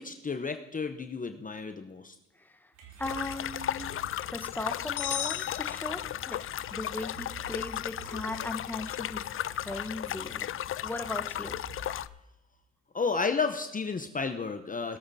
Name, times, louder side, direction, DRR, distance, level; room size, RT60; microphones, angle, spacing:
voice 1, 0.0-2.1 12.9-15.0, left 4 dB, 25° left, 7 dB, 0.8 m, -32 dB
voice 2, 2.4-2.7 3.0-3.9 4.2-6.0 6.3-6.4 6.7-9.3 9.5-10.4 10.8-11.6, left 2 dB, 5° left, 8 dB, 1.1 m, -38 dB
sound 1, 2.7-12.2, right 3 dB, 90° right, 2.4 m, -52 dB
sound 2, 3.0-12.1, left 11 dB, 45° left, 0.4 m, -35 dB
sound 3, 5.0-6.5, left 11 dB, 80° left, 1.1 m, -36 dB
20.5 x 7.7 x 4.2 m, 1.0 s
cardioid pair, 90°, 30 cm